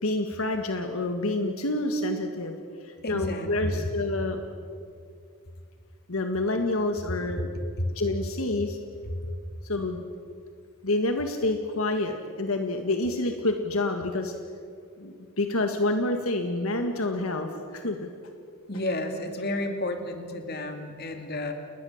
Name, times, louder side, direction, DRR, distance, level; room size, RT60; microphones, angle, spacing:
voice 1, 0.0-2.6 2.8-4.4 6.1-7.5 7.9-8.8 9.6-10.0 10.8-14.3 15.0-18.1, left 2 dB, 70° left, 5 dB, 1.8 m, -28 dB
voice 2, 3.0-3.9 7.8-7.9 9.1-9.2 18.7-21.5, left 1 dB, 45° left, 6 dB, 2.5 m, -31 dB
29.5 x 20.5 x 7.3 m, 2.2 s
head